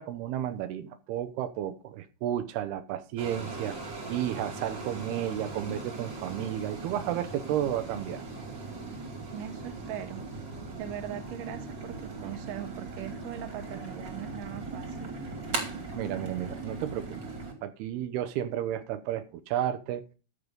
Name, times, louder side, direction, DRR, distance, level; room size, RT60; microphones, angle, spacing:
voice 1, 0.0-3.8 4.1-8.2 15.9-17.2 17.6-20.0, right 11 dB, 90° right, 10 dB, 2.9 m, -32 dB
sound 1, 3.2-17.5, right 3 dB, 35° right, 2.5 m, -39 dB
voice 2, 9.3-10.2 10.8-15.2, right 11 dB, 65° right, 7 dB, 2.8 m, -40 dB
13.0 x 6.7 x 5.3 m, 0.34 s
omnidirectional pair, 4.5 m